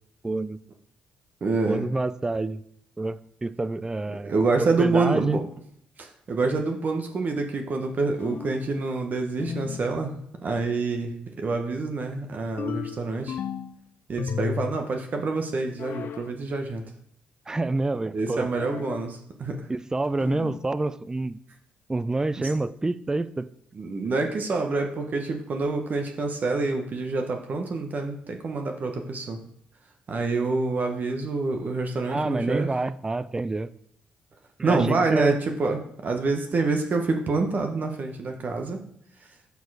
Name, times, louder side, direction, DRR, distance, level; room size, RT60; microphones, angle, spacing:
voice 1, 0.2-0.6 1.7-2.6 3.0-5.5 17.5-18.5 19.7-21.4 21.9-23.5 32.1-33.7 34.6-35.4, right 2 dB, 15° right, 16 dB, 0.4 m, -28 dB
voice 2, 1.4-1.9 4.2-5.4 6.0-13.4 14.1-16.8 18.1-19.6 22.4-22.5 23.7-29.4 30.1-32.7 34.6-38.8, right 3 dB, 50° right, 4 dB, 0.9 m, -27 dB
sound 1, 8.2-8.7 9.4-9.9 12.6-13.8 14.2-14.8 15.8-16.3 18.6-19.1 20.2-20.7, left 7 dB, 60° left, 0.4 m, -34 dB
6.8 x 4.4 x 4.8 m, 0.69 s
hypercardioid pair, 50°, 4 cm